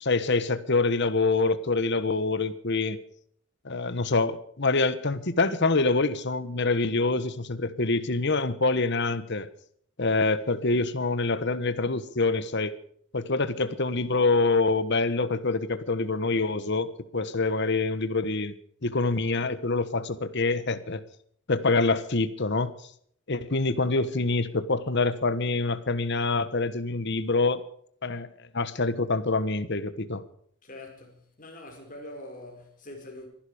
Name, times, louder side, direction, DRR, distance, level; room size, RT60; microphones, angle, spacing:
voice 1, 0.0-3.0 3.6-9.5 10.0-12.8 13.1-18.5 18.8-21.0 21.5-22.7 23.3-27.6 28.0-28.3 28.5-30.2, left 3 dB, 55° left, 1.3 m, -26 dB
voice 2, 30.6-33.3, left 1 dB, 40° left, 5.4 m, -44 dB
24.5 x 11.5 x 5.1 m
head